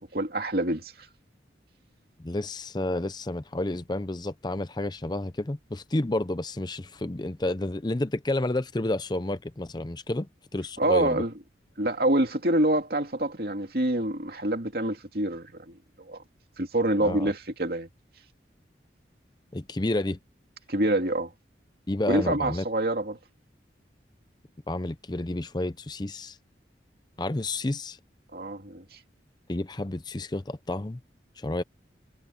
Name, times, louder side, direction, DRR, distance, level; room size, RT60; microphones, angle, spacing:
voice 1, 0.1-0.9 10.8-11.3 11.8-16.2 16.6-17.9 20.7-21.3 22.1-23.2 28.3-29.0, right 1 dB, 55° right, 2.7 m, -26 dB
voice 2, 2.2-11.2 17.0-17.3 19.5-20.2 21.9-22.6 24.7-26.4 27.2-28.0 29.5-31.0 31.4-31.6, left 2 dB, 25° left, 0.6 m, -30 dB
head